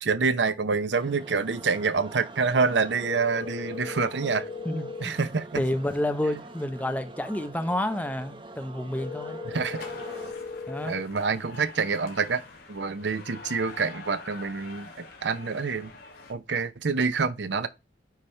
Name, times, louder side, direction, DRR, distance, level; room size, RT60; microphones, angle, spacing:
voice 1, 0.0-4.5 5.0-5.6 9.5-9.8 10.8-12.4 12.7-15.9 16.3-17.7, right 4 dB, 75° right, 0.7 m, -27 dB
sound 1, 0.9-10.3, right 2 dB, 30° right, 0.8 m, -45 dB
sound 2, 3.0-5.0 9.0-11.0, left 4 dB, 35° left, 1.1 m, -37 dB
voice 2, 4.6-5.1 5.5-9.4 10.7-11.0, left 1 dB, 10° left, 0.7 m, -29 dB
sound 3, 9.7-16.3, left 3 dB, 60° left, 2.2 m, -45 dB
9.3 x 3.6 x 4.3 m
head